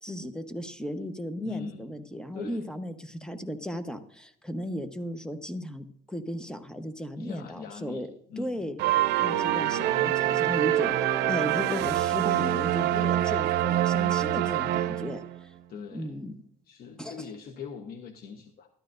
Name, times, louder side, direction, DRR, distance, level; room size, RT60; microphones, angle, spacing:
voice 1, 0.0-8.1 8.4-15.5 15.9-16.3 17.0-17.3, equal, 5° left, 9 dB, 1.0 m, -36 dB
voice 2, 1.4-1.9 2.3-2.7 7.1-8.6 15.7-16.1 16.7-18.7, left 6 dB, 65° left, 5 dB, 1.1 m, -41 dB
sound 1, 8.8-15.4, right 12 dB, 85° right, 0.6 m, -25 dB
13.0 x 12.0 x 2.6 m, 0.69 s
cardioid pair, 110°, 17 cm